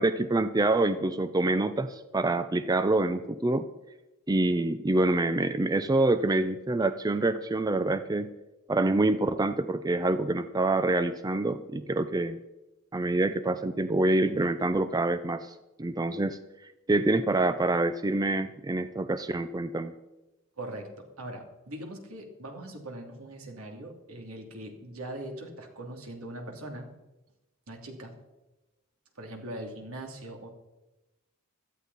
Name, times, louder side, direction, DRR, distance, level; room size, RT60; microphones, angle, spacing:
voice 1, 0.0-3.6 4.3-8.3 8.7-12.4 12.9-16.4 16.9-19.9, right 2 dB, 20° right, 11 dB, 0.5 m, -26 dB
voice 2, 20.6-26.9 27.7-28.1 29.2-30.5, right 1 dB, 75° right, 3 dB, 2.7 m, -41 dB
16.5 x 13.0 x 4.1 m, 1.0 s
head